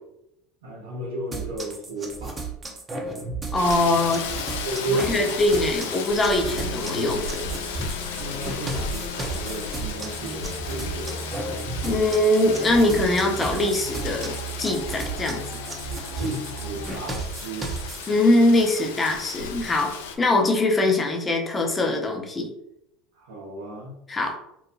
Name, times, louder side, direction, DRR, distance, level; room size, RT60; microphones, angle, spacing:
voice 1, 0.6-2.5 4.6-5.3 8.2-11.3 16.1-17.8 23.1-24.0, right 2 dB, 85° right, -3 dB, 0.9 m, -33 dB
sound 1, 1.3-18.1, right 3 dB, 25° right, 0.6 m, -34 dB
Rain, 3.5-20.2, left 6 dB, 80° left, 0.3 m, -35 dB
voice 2, 3.5-4.3 5.1-7.4 11.8-15.4 18.1-22.5 24.1-24.4, left 2 dB, 25° left, 2 dB, 0.6 m, -22 dB
sound 2, 6.4-16.9, right 1 dB, 55° left, 0.7 m, -39 dB
2.8 x 2.1 x 2.6 m, 0.81 s
hypercardioid pair, 80°, 0 cm